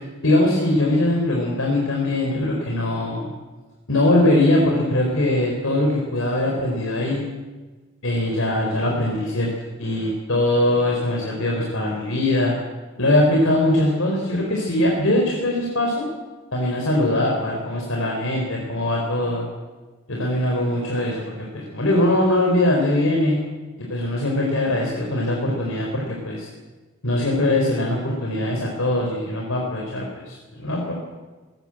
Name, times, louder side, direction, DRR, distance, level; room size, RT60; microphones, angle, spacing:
voice 1, 0.2-3.3 3.9-7.2 8.0-9.5 9.8-12.5 13.0-16.1 16.5-19.5 20.1-23.4 23.8-26.5 27.0-30.9, left 1 dB, 75° left, -1 dB, 4.4 m, -21 dB
20.5 x 18.0 x 7.9 m, 1.3 s
head